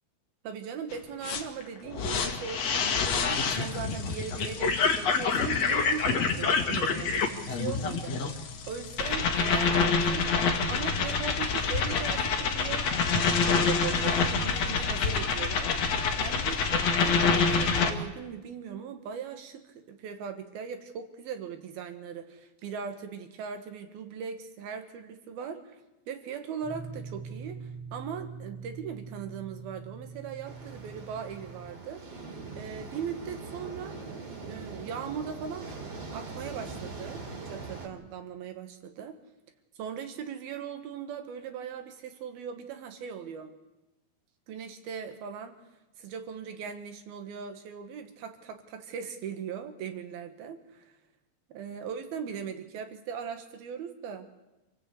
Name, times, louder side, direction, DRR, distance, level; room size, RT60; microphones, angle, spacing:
voice 1, 0.4-15.8 16.2-25.8 26.1-32.0 32.6-34.0 34.4-35.7 36.1-39.2 39.8-43.5 44.5-45.6 46.0-50.9 51.5-54.3, right 7 dB, 70° right, 7 dB, 3.4 m, -39 dB
sound 1, 0.9-1.0 1.2-17.9, left 5 dB, 50° left, 2.4 m, -27 dB
sound 2, 26.6-31.7, right 4 dB, 5° left, 2.8 m, -43 dB
sound 3, 30.4-37.9, right 3 dB, 40° right, 3.8 m, -42 dB
27.5 x 17.0 x 8.4 m, 1.0 s
omnidirectional pair, 4.7 m